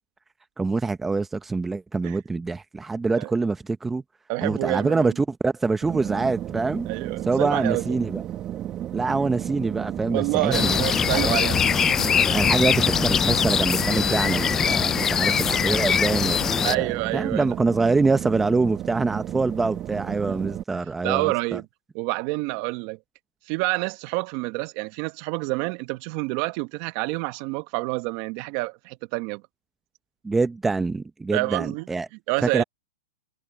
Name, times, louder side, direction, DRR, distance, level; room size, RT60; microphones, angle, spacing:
voice 1, 0.6-4.0 4.4-6.9 7.3-8.2 8.9-11.4 12.3-16.9 17.1-21.6 30.2-32.1 32.4-32.6, right 3 dB, 10° right, 0.7 m, -25 dB
voice 2, 4.3-5.1 6.9-8.0 10.1-11.9 16.6-17.5 20.7-21.6 21.9-23.0 23.5-29.4 31.3-31.9 32.3-32.6, right 24 dB, 40° right, 1.4 m, -28 dB
sound 1, 5.8-20.6, right 11 dB, 25° right, 1.7 m, -33 dB
sound 2, 10.5-16.8, left 7 dB, 15° left, 0.3 m, -22 dB
hypercardioid pair, 140°, 3 cm